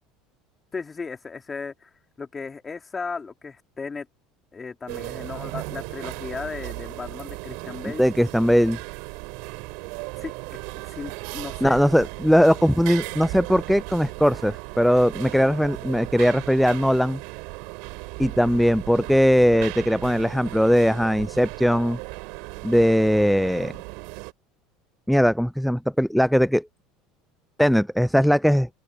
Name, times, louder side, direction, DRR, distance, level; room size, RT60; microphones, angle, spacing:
voice 1, 0.7-1.9 2.2-4.1 4.5-8.0 10.2-10.3 10.7-11.8, left 4 dB, 20° left, 3.2 m, -35 dB
sound 1, 4.9-24.3, right 30 dB, 70° right, 6.7 m, -36 dB
voice 2, 8.0-8.8 11.6-17.2 18.2-22.0 22.6-23.7 25.1-26.7 27.6-28.7, equal, ahead, 0.3 m, -20 dB
open air
supercardioid pair, 115°, 0 cm